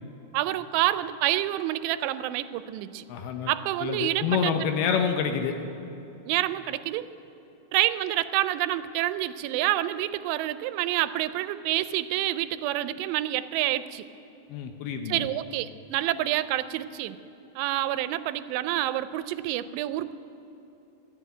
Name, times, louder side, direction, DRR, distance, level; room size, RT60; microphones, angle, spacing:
voice 1, 0.3-3.0 3.5-4.5 6.3-7.1 7.7-14.1 15.1-17.2 17.6-20.1, right 14 dB, 85° right, 14 dB, 2.7 m, -28 dB
voice 2, 3.1-3.5 3.8-5.5 14.5-15.2, left 7 dB, 75° left, 6 dB, 2.5 m, -27 dB
14.5 x 11.0 x 9.2 m, 2.9 s
omnidirectional pair, 4.9 m